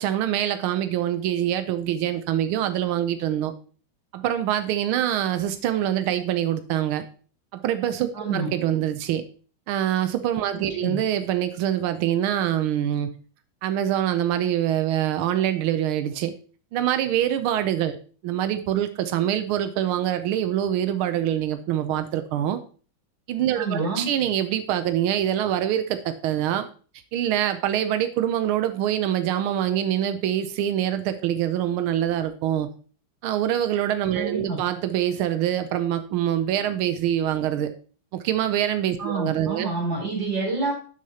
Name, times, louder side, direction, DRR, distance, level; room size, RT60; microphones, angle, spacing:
voice 1, 0.0-3.5 4.1-7.0 7.5-9.2 9.7-13.1 13.6-16.3 16.7-18.0 18.2-22.6 23.3-26.7 27.1-32.7 33.2-37.7 38.1-39.7, right 11 dB, 85° right, 10 dB, 1.5 m, -25 dB
voice 2, 8.1-8.5 10.8-11.0 23.6-24.1 34.1-34.6 39.0-40.7, right 3 dB, 60° right, -2 dB, 4.5 m, -28 dB
11.5 x 6.4 x 2.8 m, 0.40 s
omnidirectional pair, 2.3 m